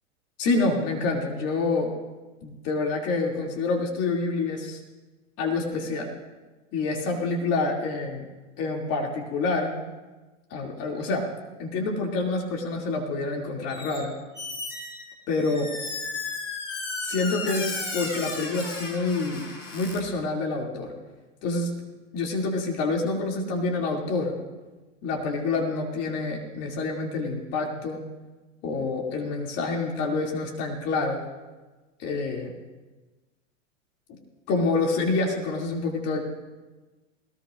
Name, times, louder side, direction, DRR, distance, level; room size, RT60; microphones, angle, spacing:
voice 1, 0.4-1.9 2.4-4.8 5.4-6.1 6.7-8.2 8.6-9.7 10.5-11.3 11.6-14.1 15.3-15.7 17.0-19.4 19.7-20.9 21.4-21.7 22.1-24.4 25.0-28.0 28.6-31.2 32.0-32.5 34.5-36.2, left 3 dB, 40° left, 0 dB, 2.8 m, -27 dB
Squeak, 13.7-14.1 14.3-20.0, left 3 dB, 85° left, 5.5 m, -34 dB
20.5 x 19.0 x 2.6 m, 1.2 s
hypercardioid pair, 100°, 37 cm